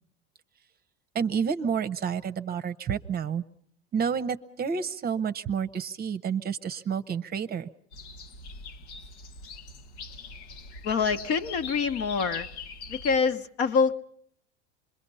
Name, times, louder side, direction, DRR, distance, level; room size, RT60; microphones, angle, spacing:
voice 1, 1.1-3.4 3.9-7.7, right 7 dB, 30° right, 10 dB, 0.8 m, -29 dB
sound 1, 7.9-13.2, left 4 dB, 85° left, 1.3 m, -42 dB
voice 2, 10.8-12.5 12.9-13.9, left 5 dB, 45° left, 10 dB, 1.1 m, -25 dB
27.0 x 21.5 x 5.5 m, 0.67 s
supercardioid pair, 110°, 32 cm